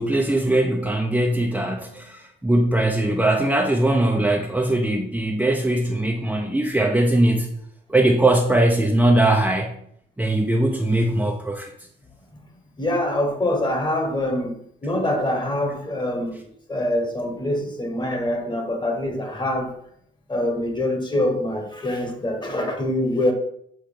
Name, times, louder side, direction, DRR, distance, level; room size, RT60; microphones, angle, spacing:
voice 1, 0.0-7.5 7.9-9.8 10.2-11.7, right 1 dB, 5° right, -1 dB, 0.7 m, -20 dB
voice 2, 12.8-19.7 20.3-23.3, left 1 dB, 20° left, 5 dB, 1.4 m, -25 dB
7.6 x 3.0 x 5.1 m, 0.70 s
cardioid pair, 90°, 20 cm